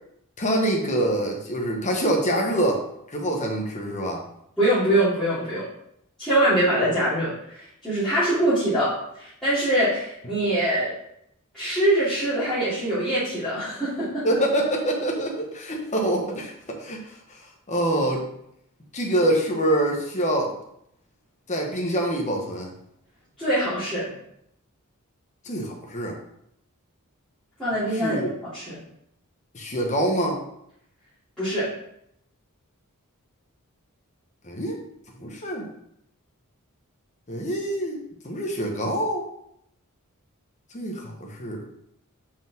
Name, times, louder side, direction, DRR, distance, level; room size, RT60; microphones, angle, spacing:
voice 1, 0.4-4.2 14.2-17.1 17.7-18.2 18.9-20.6 21.5-22.7 25.4-26.2 27.9-28.3 29.5-30.4 34.4-34.8 35.2-35.7 37.3-39.3 40.7-41.7, right 1 dB, 30° left, 0 dB, 1.2 m, -25 dB
voice 2, 4.6-5.7 6.2-10.9 11.5-14.4 23.4-24.1 27.6-28.8 31.4-31.7, right 1 dB, ahead, -16 dB, 2.7 m, -23 dB
5.7 x 5.2 x 3.5 m, 0.74 s
head